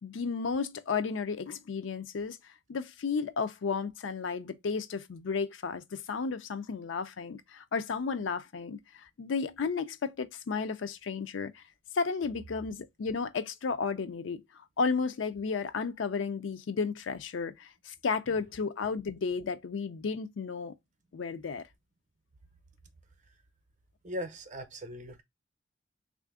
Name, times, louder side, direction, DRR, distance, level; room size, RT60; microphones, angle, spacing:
voice 1, 0.0-2.4 2.7-11.6 11.9-14.4 14.8-20.7 21.1-21.7, left 5 dB, 85° left, 0.4 m, -33 dB
voice 2, 24.0-25.2, equal, 40° right, 0.6 m, -39 dB
3.3 x 2.5 x 3.5 m
head